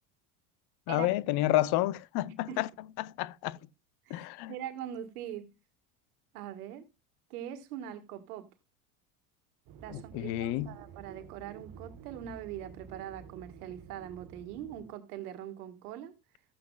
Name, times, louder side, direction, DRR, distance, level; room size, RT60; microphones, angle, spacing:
voice 1, 0.9-2.7 3.0-3.6 4.1-4.5 9.9-10.8, left 16 dB, 60° left, 0.7 m, -30 dB
voice 2, 4.1-5.5 6.3-6.9 7.3-8.5 9.8-16.1, right 10 dB, 80° right, 1.6 m, -42 dB
sound 1, 9.7-14.9, right 7 dB, 50° right, 1.3 m, -50 dB
14.5 x 8.1 x 2.3 m
hypercardioid pair, 90°, 45 cm